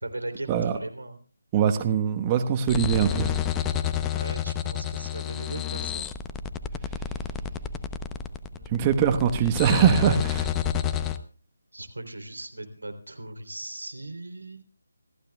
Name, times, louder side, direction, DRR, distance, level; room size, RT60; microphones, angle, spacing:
voice 1, 0.0-1.2 4.1-6.1 8.5-8.8 11.7-14.6, right 2 dB, 80° right, 8 dB, 3.4 m, -38 dB
voice 2, 1.5-3.3 8.7-10.5, right 8 dB, 20° right, 6 dB, 1.2 m, -22 dB
sound 1, 2.7-11.2, left 8 dB, 10° left, 0.8 m, -30 dB
26.5 x 15.0 x 2.3 m, 0.41 s
figure-of-eight pair, 155°, 0 cm